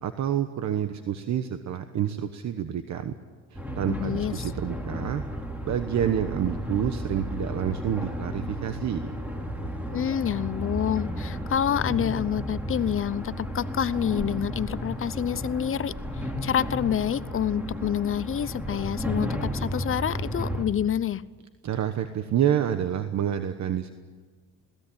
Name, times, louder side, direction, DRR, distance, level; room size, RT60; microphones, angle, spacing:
voice 1, 0.0-3.1 3.5-5.2 5.6-9.2 21.6-23.9, right 10 dB, 65° right, 9 dB, 1.2 m, -28 dB
sound 1, 3.6-20.7, equal, 5° right, 3.5 m, -33 dB
voice 2, 3.9-4.5 9.9-15.9 16.4-21.2, left 9 dB, 45° left, 17 dB, 0.8 m, -27 dB
21.0 x 18.0 x 8.8 m, 1.5 s
cardioid pair, 90°, 30 cm